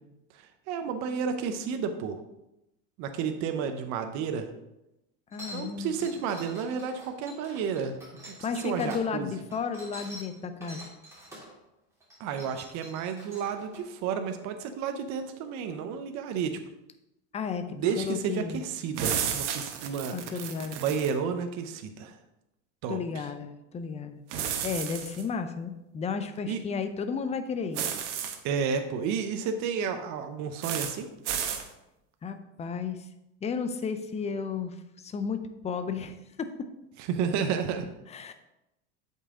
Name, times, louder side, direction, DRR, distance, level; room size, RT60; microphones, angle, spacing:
voice 1, 0.3-2.2 3.0-4.5 5.5-8.2 8.6-9.3 12.2-16.6 17.7-20.2 20.8-22.2 22.8-23.0 26.5-26.6 28.4-31.1 37.1-37.9, right 6 dB, 55° right, 6 dB, 0.8 m, -31 dB
voice 2, 5.3-6.1 8.4-10.8 17.3-17.7 18.0-18.6 20.1-20.8 22.9-24.2 24.6-27.8 32.2-33.0 33.4-36.5 38.1-38.3, left 5 dB, 20° left, 9 dB, 0.6 m, -33 dB
sound 1, 5.3-9.0 9.5-11.5 12.0-13.8, equal, 10° right, 3.1 m, -46 dB
sound 2, 19.0-21.1 24.3-25.2 27.7-28.4 30.6-30.9 31.3-31.6, right 8 dB, 85° right, 1.1 m, -32 dB
8.1 x 5.5 x 3.7 m, 0.91 s
supercardioid pair, 120°, 34 cm